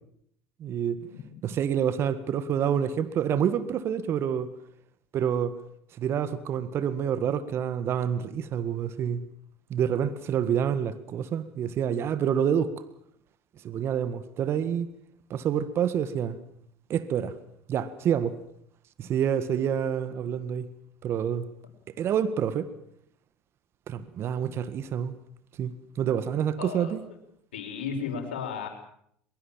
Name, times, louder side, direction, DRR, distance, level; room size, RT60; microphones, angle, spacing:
voice 1, 0.6-1.0 1.4-4.5 5.1-5.6 6.0-9.2 9.7-12.7 13.6-14.9 15.3-16.4 16.9-17.3 17.7-18.4 19.0-20.7 21.0-21.5 22.0-22.7 23.9-25.1 25.6-27.0, right 8 dB, 50° right, 14 dB, 1.7 m, -27 dB
voice 2, 26.6-26.9 27.5-28.7, left 6 dB, 90° left, 4 dB, 5.4 m, -33 dB
22.5 x 22.5 x 7.4 m, 0.69 s
hypercardioid pair, 80°, 5 cm